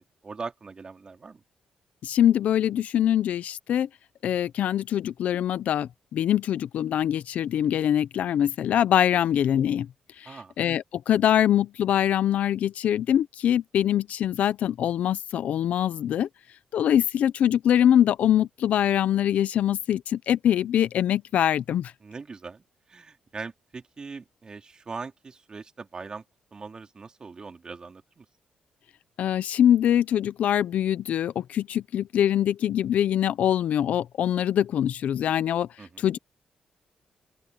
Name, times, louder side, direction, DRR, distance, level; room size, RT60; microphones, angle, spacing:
voice 1, 0.2-1.4 10.3-10.5 22.0-22.6 22.9-26.2 26.5-28.3 35.8-36.0, right 4 dB, 35° right, 3.4 m, -40 dB
voice 2, 2.0-3.9 4.2-9.9 10.2-16.3 16.7-21.9 29.2-35.7 36.0-36.2, left 10 dB, 75° left, 0.8 m, -23 dB
open air
cardioid pair, 95°, 2 cm